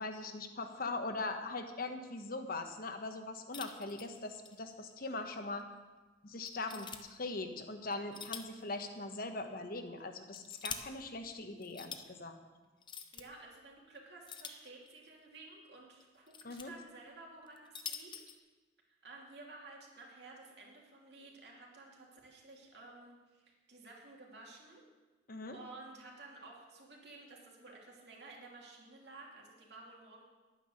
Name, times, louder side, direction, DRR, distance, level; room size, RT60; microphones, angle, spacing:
voice 1, 0.0-5.7 6.2-12.3 16.4-16.7 25.3-25.6, left 3 dB, 55° left, 6 dB, 1.1 m, -41 dB
sound 1, 3.5-4.6 4.9-5.0 5.6-5.7 6.4-7.0 7.9-8.6 8.9-9.0 10.0-10.8 11.6-12.0 12.8-13.2 14.3-15.1 16.0-16.7 17.5-18.4, left 6 dB, 30° left, 0.8 m, -45 dB
voice 2, 13.1-18.1 19.0-24.8 25.5-30.2, right 3 dB, 70° right, -2 dB, 2.7 m, -53 dB
11.0 x 9.3 x 6.4 m, 1.3 s
head